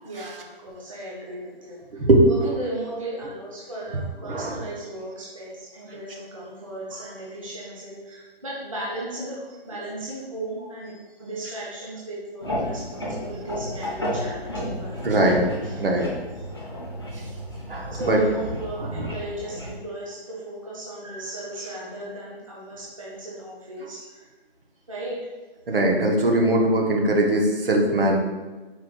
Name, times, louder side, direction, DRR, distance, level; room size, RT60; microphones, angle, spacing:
voice 1, 0.0-16.1 16.4-16.5 17.7-24.3 24.9-25.2, right 1 dB, 35° right, -6 dB, 0.6 m, -36 dB
voice 2, 1.9-2.5 4.2-4.6 15.0-15.4 15.8-16.1 17.7-18.2 18.8-19.1 25.7-28.2, right 1 dB, 60° right, 0 dB, 0.9 m, -20 dB
sound 1, 12.4-19.8, equal, 25° left, 0.5 m, -32 dB
4.6 x 2.4 x 3.6 m, 1.2 s
hypercardioid pair, 180°, 31 cm